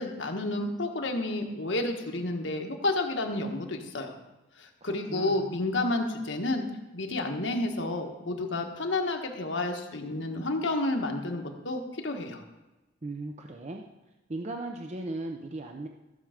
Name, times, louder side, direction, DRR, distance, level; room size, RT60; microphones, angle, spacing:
voice 1, 0.0-4.1 4.6-6.6 6.9-12.4, left 2 dB, 75° left, 3 dB, 1.4 m, -30 dB
voice 2, 4.8-5.6 13.0-13.8 14.3-15.9, right 2 dB, 35° right, 3 dB, 0.7 m, -37 dB
15.0 x 6.9 x 5.1 m, 1.1 s
head